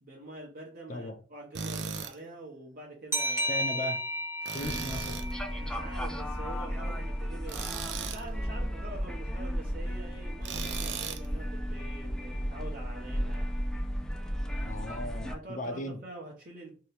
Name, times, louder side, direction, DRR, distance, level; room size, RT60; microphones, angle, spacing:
voice 1, 0.0-3.6 5.6-13.6 15.3-16.8, right 2 dB, 55° right, 0.7 m, -45 dB
Tools, 1.5-2.1 4.4-5.3 7.5-8.2 10.4-11.3, right 6 dB, 85° right, 0.5 m, -37 dB
sound 1, 3.1-6.4, equal, 15° right, 0.7 m, -34 dB
voice 2, 3.5-4.0 4.5-5.2 14.6-16.0, left 1 dB, 45° left, 0.6 m, -37 dB
sound 2, 4.6-15.4, equal, 5° left, 0.3 m, -34 dB
2.8 x 2.7 x 3.3 m
head